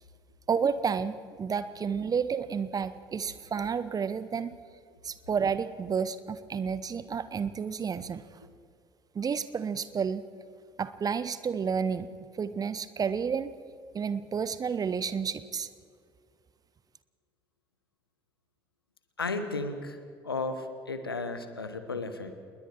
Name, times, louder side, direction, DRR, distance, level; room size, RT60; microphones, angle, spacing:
voice 1, 0.5-4.6 5.0-8.2 9.1-10.2 10.8-12.1 12.4-13.5 13.9-15.7, right 6 dB, 30° right, 14 dB, 0.9 m, -31 dB
voice 2, 19.2-22.3, left 3 dB, 85° left, 9 dB, 1.2 m, -34 dB
27.5 x 21.0 x 4.6 m, 2.1 s
figure-of-eight pair, 55°, 12 cm